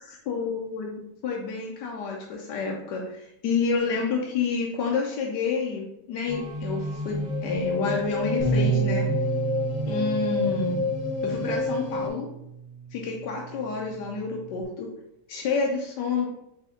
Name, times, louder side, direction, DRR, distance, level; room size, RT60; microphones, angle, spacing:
voice 1, 0.3-9.1 9.9-10.8 11.2-12.3 12.9-14.9 15.3-16.3, left 4 dB, 90° left, 0 dB, 1.3 m, -29 dB
sound 1, 6.3-12.1, left 3 dB, 25° right, 0.4 m, -29 dB
Bass guitar, 8.4-14.6, right 5 dB, 45° left, 1.4 m, -31 dB
4.2 x 3.3 x 3.6 m, 0.82 s
omnidirectional pair, 1.8 m